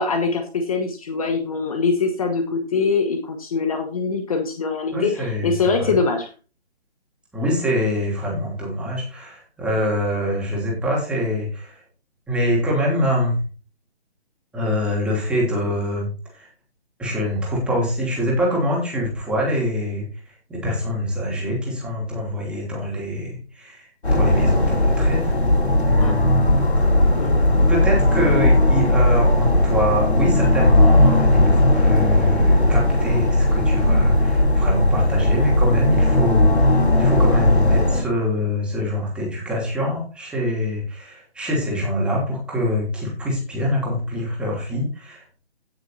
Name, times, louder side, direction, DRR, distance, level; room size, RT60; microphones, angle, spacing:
voice 1, 0.0-6.3 26.0-26.2 27.1-27.4, left 4 dB, 35° left, 5 dB, 1.4 m, -23 dB
voice 2, 4.9-6.0 7.3-11.8 12.3-13.4 14.5-16.5 17.0-25.4 25.8-26.4 26.8-26.9 27.7-45.2, left 1 dB, 5° right, -3 dB, 2.8 m, -24 dB
sound 1, 24.0-38.0, left 1 dB, 80° left, 4.9 m, -17 dB
17.0 x 6.6 x 2.7 m, 0.35 s
figure-of-eight pair, 155°, 32 cm